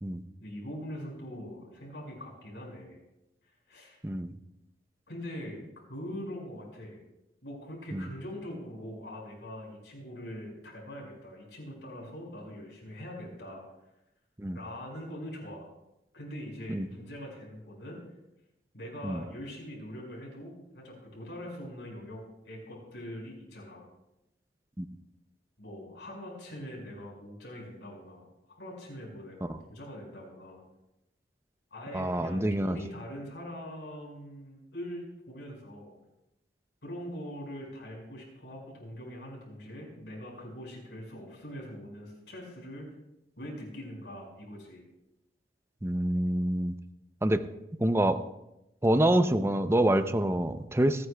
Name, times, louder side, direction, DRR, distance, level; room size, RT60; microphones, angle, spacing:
voice 1, 0.4-3.0 3.7-4.0 5.1-5.6 5.9-7.0 7.4-13.6 14.5-15.7 16.1-18.0 18.7-23.9 25.6-30.6 31.7-35.9 36.8-42.9 43.4-44.8, equal, 75° left, -1 dB, 5.2 m, -42 dB
voice 2, 4.0-4.3 7.9-8.1 14.4-14.6 16.7-16.9 19.0-19.2 24.8-24.9 31.9-32.8 45.8-46.7 47.2-47.4 47.8-48.2 48.8-51.1, right 1 dB, 15° right, 10 dB, 0.5 m, -26 dB
26.0 x 9.6 x 2.2 m, 0.89 s
head